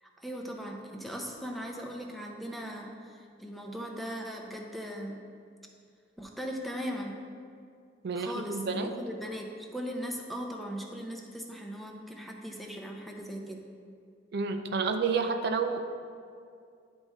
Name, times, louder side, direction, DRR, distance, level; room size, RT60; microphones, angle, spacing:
voice 1, 0.0-5.2 6.2-7.2 8.1-13.6, equal, ahead, 1 dB, 0.6 m, -39 dB
voice 2, 8.0-8.9 14.3-15.8, right 5 dB, 60° right, 7 dB, 0.4 m, -30 dB
10.5 x 3.6 x 4.1 m, 2.3 s
head